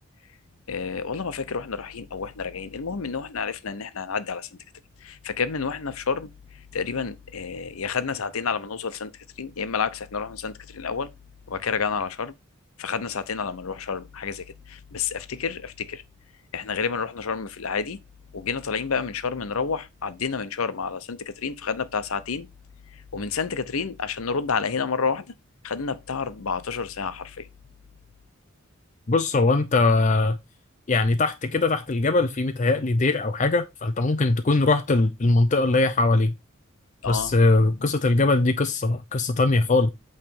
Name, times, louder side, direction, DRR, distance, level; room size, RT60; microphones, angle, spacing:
voice 1, 0.7-4.5 5.0-6.3 6.7-9.1 9.4-11.1 11.5-12.3 12.8-16.0 16.5-18.0 18.3-22.5 23.1-25.3 25.6-27.5 37.0-37.3, left 5 dB, 75° left, 0.8 m, -29 dB
voice 2, 29.1-30.4 30.9-36.3 37.1-39.9, left 2 dB, 35° left, 0.5 m, -21 dB
8.6 x 3.3 x 5.3 m
head